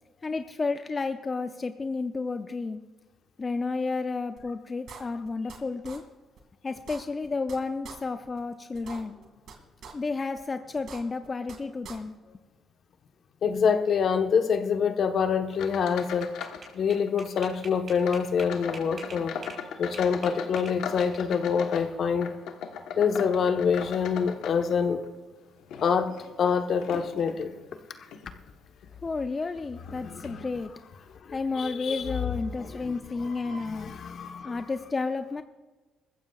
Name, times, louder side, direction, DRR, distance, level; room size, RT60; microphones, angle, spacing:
voice 1, 0.2-2.8 3.4-6.0 6.6-9.2 9.9-12.1 29.0-30.7 31.3-33.9 34.4-35.4, left 4 dB, 30° left, 8 dB, 0.6 m, -31 dB
sound 1, 4.4-4.5 4.9-5.6 5.8-6.0 6.4-6.5 6.7-7.6 7.8-8.0 8.4-8.5 8.7-9.5 9.8-9.9 10.4-10.5 10.7-11.6 11.8-12.0, right 6 dB, 70° right, 2.3 m, -44 dB
voice 2, 13.4-16.3 16.7-19.3 19.8-22.3 23.0-25.0 25.8-26.1 26.4-27.5 30.0-30.4 31.6-32.0 32.6-34.6, left 6 dB, 60° left, 6 dB, 1.2 m, -26 dB
sound 2, 15.5-16.7 16.9-17.5 18.0-25.1 25.6-27.4 28.0-28.3 28.8-28.9 29.8-29.9 30.2-30.4, left 7 dB, 85° left, 1.2 m, -39 dB
sound 3, 15.7-19.6 19.9-21.5, right 3 dB, 45° right, 5.1 m, -45 dB
22.0 x 15.0 x 2.4 m, 1.3 s
cardioid pair, 90°, 0 cm